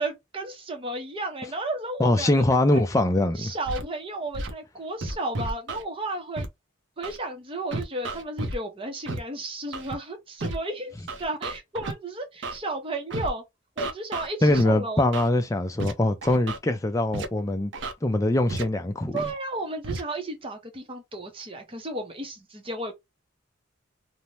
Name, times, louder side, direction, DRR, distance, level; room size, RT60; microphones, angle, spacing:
voice 1, 0.0-2.5 2.7-2.8 3.4-6.5 7.0-13.4 13.8-15.0 19.1-22.9, right 2 dB, 25° right, 0.7 m, -33 dB
voice 2, 2.0-3.5 14.4-17.7 18.0-19.2, left 1 dB, 15° left, 0.4 m, -23 dB
Scratching (performance technique), 3.7-3.8 4.3-4.5 5.0-5.8 6.4-6.5 7.0-7.2 7.7-8.6 9.1-9.2 9.7-9.9 10.4-10.6 11.1-11.9 12.4-12.6 13.1-13.3 13.8-14.6 15.1-15.3 15.8-15.9 16.2-16.6 17.1-17.3 17.7-17.9 18.5-18.6 19.2-19.3 19.8-20.0, right 2 dB, 60° right, 0.6 m, -32 dB
2.6 x 2.1 x 3.0 m
head